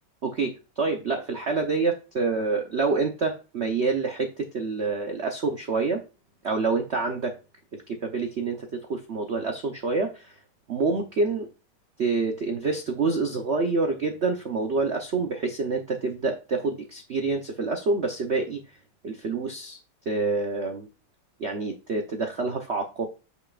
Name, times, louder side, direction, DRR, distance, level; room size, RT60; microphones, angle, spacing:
voice 1, 0.2-6.0 6.4-7.3 7.7-10.4 10.7-11.5 12.0-18.8 19.0-19.8 20.1-20.9 21.4-23.1, right 4 dB, 85° right, 4 dB, 0.6 m, -27 dB
8.1 x 6.5 x 2.4 m, 0.31 s
omnidirectional pair, 2.4 m